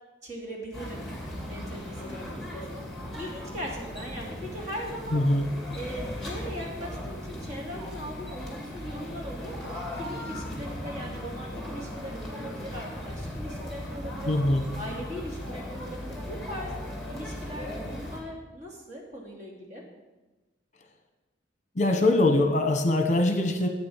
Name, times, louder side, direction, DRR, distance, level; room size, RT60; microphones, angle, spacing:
voice 1, 0.2-1.1 1.4-2.8 3.1-5.3 5.7-14.4 14.7-16.7 17.1-19.8, equal, 40° right, -2 dB, 2.9 m, -40 dB
sound 1, 0.7-18.2, left 1 dB, ahead, 2.6 m, -37 dB
voice 2, 5.1-5.5 14.3-14.6 21.8-23.7, left 2 dB, 40° left, 5 dB, 1.1 m, -22 dB
12.5 x 8.6 x 6.4 m, 1.1 s
head